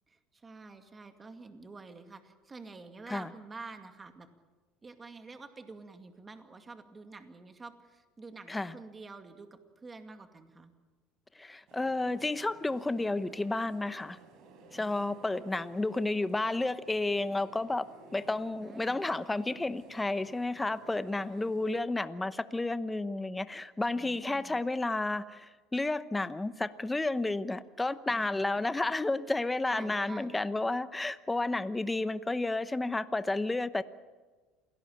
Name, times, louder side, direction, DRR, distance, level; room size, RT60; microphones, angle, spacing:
voice 1, 0.1-4.3 4.8-10.7 14.7-15.7 18.6-19.2 21.2-21.5 23.9-24.6 28.1-28.7 29.6-30.3, right 3 dB, 20° right, 7 dB, 2.3 m, -49 dB
voice 2, 11.3-14.2 14.7-33.8, left 2 dB, 10° left, 13 dB, 1.0 m, -31 dB
sound 1, 11.7-21.8, right 3 dB, 60° right, 5.8 m, -55 dB
28.0 x 18.0 x 8.9 m, 1.3 s
supercardioid pair, 120°, 0 cm